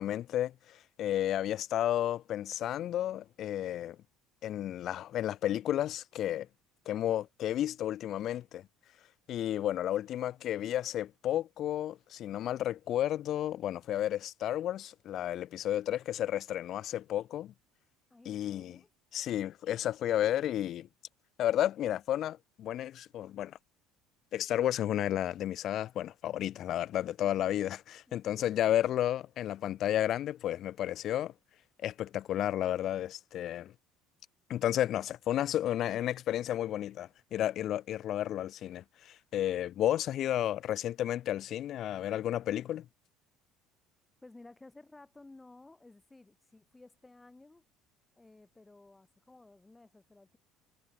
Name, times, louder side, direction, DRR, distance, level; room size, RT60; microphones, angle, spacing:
voice 1, 0.0-4.0 4.4-6.5 6.9-8.7 9.3-17.5 18.3-18.8 19.1-20.9 21.4-23.6 24.3-31.3 31.8-33.7 34.5-42.9, left 12 dB, 45° left, 0.4 m, -32 dB
voice 2, 18.1-18.9 44.2-47.6 48.2-50.4, left 2 dB, 15° left, 7.3 m, -56 dB
figure-of-eight pair, 60°, 0 cm